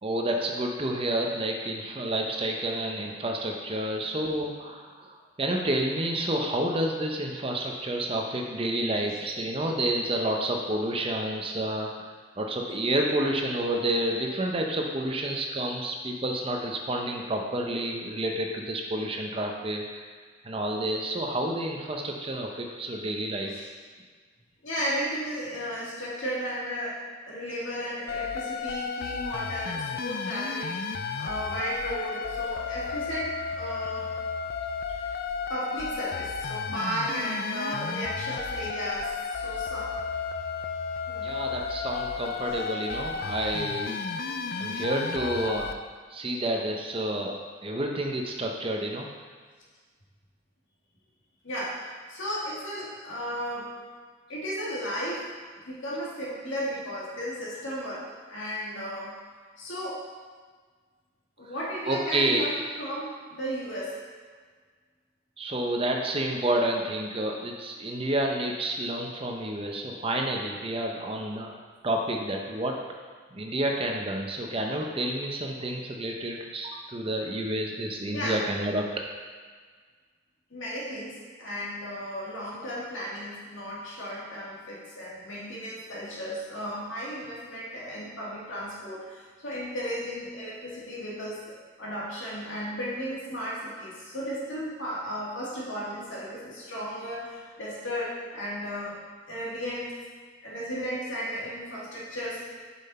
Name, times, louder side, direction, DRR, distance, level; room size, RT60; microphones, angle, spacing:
voice 1, 0.0-12.1 12.4-20.0 20.4-23.5 41.2-44.0 44.6-45.7 46.1-47.3 47.6-49.1 61.9-62.4 65.4-71.5 71.8-72.8 73.3-78.9, right 1 dB, 25° right, 1 dB, 0.7 m, -29 dB
voice 2, 24.6-27.0 27.3-30.8 31.2-34.1 35.5-40.0 41.1-41.3 44.7-44.8 51.4-53.8 54.3-55.3 55.5-58.0 58.3-59.2 59.6-60.0 61.4-64.0 78.1-78.5 80.5-99.0 99.3-99.9 100.4-102.5, equal, 75° left, -6 dB, 2.2 m, -34 dB
sound 1, 28.1-45.7, left 5 dB, 50° left, 0.4 m, -33 dB
7.2 x 5.7 x 4.2 m, 1.6 s
head